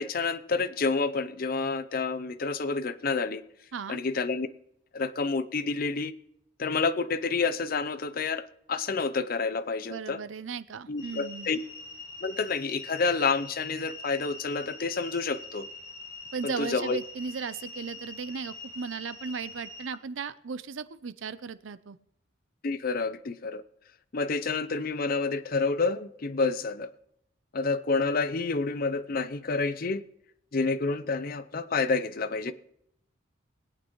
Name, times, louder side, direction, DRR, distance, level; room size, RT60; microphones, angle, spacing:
voice 1, 0.0-3.4 3.9-4.5 4.9-6.1 6.6-10.2 10.9-11.6 12.2-15.7 16.4-17.0 22.6-23.6 24.1-26.9 27.5-30.0 30.5-32.5, left 4 dB, 45° left, 0.6 m, -29 dB
voice 2, 9.9-11.5 16.3-22.0, right 5 dB, 75° right, 0.5 m, -36 dB
sound 1, 11.0-19.8, left 3 dB, 20° left, 3.4 m, -44 dB
20.5 x 8.8 x 3.1 m
head